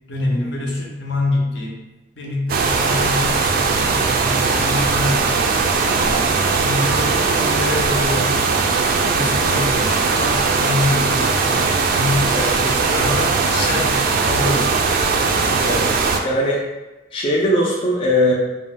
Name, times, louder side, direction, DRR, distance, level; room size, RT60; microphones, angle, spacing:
voice 1, 0.1-1.8 2.2-5.4 5.8-6.2 6.5-8.4 9.0-14.9, left 2 dB, 70° left, -1 dB, 0.6 m, -25 dB
sound 1, 2.5-16.2, right 4 dB, 55° right, 0.3 m, -19 dB
voice 2, 15.6-15.9 16.2-16.6 17.1-18.3, equal, 30° left, -3 dB, 0.3 m, -19 dB
2.5 x 2.0 x 3.4 m, 1.1 s
head